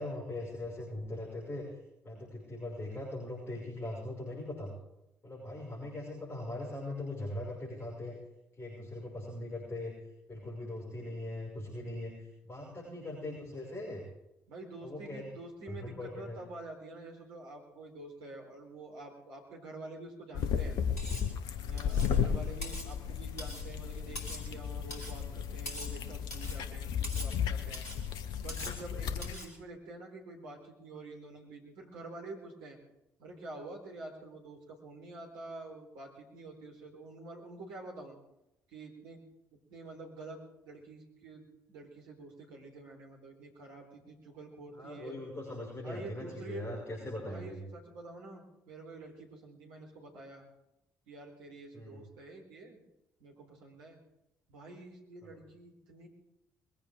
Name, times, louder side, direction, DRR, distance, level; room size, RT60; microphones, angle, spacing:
voice 1, 0.0-1.6 2.0-4.7 5.2-8.2 8.6-9.9 10.3-14.0 14.8-15.3 15.7-16.4 44.7-47.6 51.7-52.0, left 1 dB, 25° left, -4 dB, 6.3 m, -40 dB
voice 2, 12.6-13.1 14.5-20.8 21.6-27.9 28.4-32.8 33.2-38.2 38.7-39.2 39.7-45.2 45.8-46.6 47.2-50.4 51.1-52.8 53.2-54.0 54.5-56.1, right 2 dB, 65° right, -1 dB, 4.0 m, -48 dB
sound 1, 20.3-29.3, left 7 dB, 60° left, 1.1 m, -34 dB
Cutlery silverware, 21.0-21.3 21.8-22.2 22.6-22.9 23.4-23.7 24.2-24.5 24.9-25.2 25.7-26.0 26.3-26.6 27.0-27.3 27.7-28.0 28.5-28.8 29.2-29.5, equal, 80° left, 2.3 m, -43 dB
21.5 x 15.5 x 3.8 m, 0.86 s
figure-of-eight pair, 45°, 8 cm